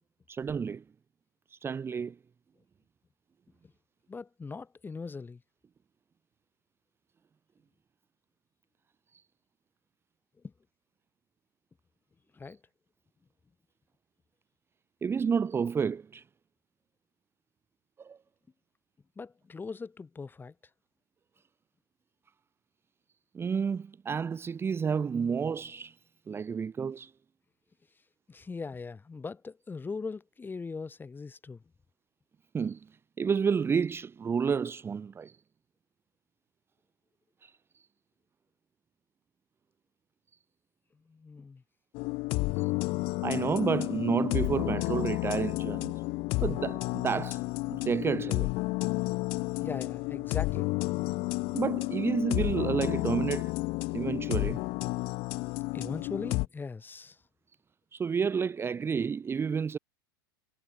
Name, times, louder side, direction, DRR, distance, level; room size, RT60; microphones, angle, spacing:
voice 1, 0.3-0.8 1.5-2.2 9.1-9.2 15.0-16.2 18.0-18.2 23.3-26.0 26.3-27.1 32.5-32.9 33.2-35.4 37.4-37.8 42.6-42.7 43.2-45.9 46.4-48.5 51.5-53.5 53.9-54.6 57.9-59.8, right 6 dB, 20° right, 0.9 m, -30 dB
voice 2, 4.1-5.4 10.4-10.5 12.3-12.6 19.2-20.5 28.3-31.6 41.1-41.6 49.6-50.7 55.7-57.2, left 4 dB, 15° left, 3.9 m, -40 dB
sound 1, 41.9-56.5, left 24 dB, 50° left, 1.6 m, -31 dB
hypercardioid pair, 90°, 12 cm